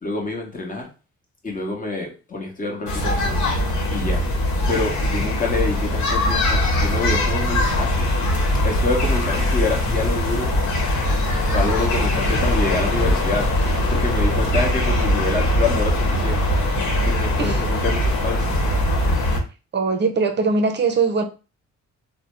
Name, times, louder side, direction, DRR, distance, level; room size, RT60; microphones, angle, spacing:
voice 1, 0.0-0.8 1.4-3.5 3.9-4.2 4.7-8.1 8.6-10.5 11.5-13.5 13.9-16.4 17.0-18.5, left 3 dB, 25° left, 1.0 m, -27 dB
sound 1, 2.9-19.4, left 1 dB, 75° left, 1.0 m, -21 dB
voice 2, 19.7-21.2, right 4 dB, 35° right, 0.6 m, -21 dB
2.6 x 2.1 x 3.3 m
cardioid pair, 90°, 30 cm